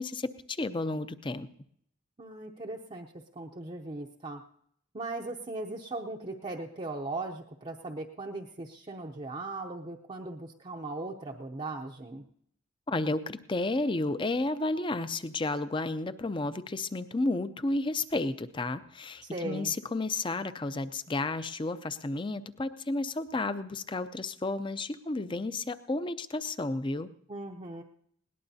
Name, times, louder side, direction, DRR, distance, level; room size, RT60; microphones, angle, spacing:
voice 1, 0.0-1.5 12.9-27.1, left 2 dB, 25° left, 12 dB, 0.5 m, -32 dB
voice 2, 2.2-4.4 4.9-12.2 19.2-19.7 27.3-27.8, right 2 dB, 30° right, 0 dB, 0.6 m, -38 dB
20.5 x 18.0 x 2.7 m, 0.69 s
head